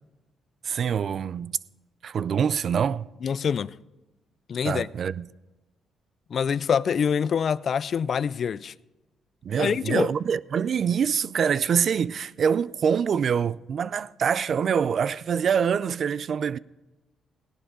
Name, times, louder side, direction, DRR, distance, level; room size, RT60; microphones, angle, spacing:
voice 1, 0.6-1.6 2.0-3.1 4.6-5.3 9.4-16.6, right 7 dB, 55° right, 0.3 m, -25 dB
voice 2, 3.2-3.7 4.5-4.9 6.3-8.7 9.6-10.1, left 7 dB, 50° left, 0.3 m, -25 dB
17.0 x 11.0 x 3.7 m
cardioid pair, 90°, 0 cm